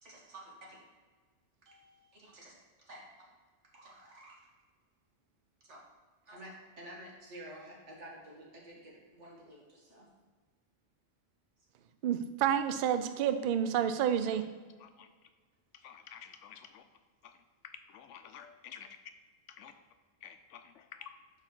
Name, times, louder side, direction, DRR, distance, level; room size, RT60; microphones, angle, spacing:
voice 1, 0.0-0.8 1.7-2.5 2.9-3.0 3.7-4.4 5.7-5.8 6.2-10.1, right 1 dB, 80° right, -3 dB, 2.1 m, -51 dB
voice 2, 12.0-14.4, right 9 dB, 60° right, 10 dB, 0.6 m, -29 dB
voice 3, 14.8-15.3 15.7-16.8 17.2-17.4 17.6-19.0 19.5-19.7 20.2-21.2, left 8 dB, 85° left, 9 dB, 1.0 m, -51 dB
5.2 x 4.6 x 6.0 m, 1.5 s
omnidirectional pair, 1.2 m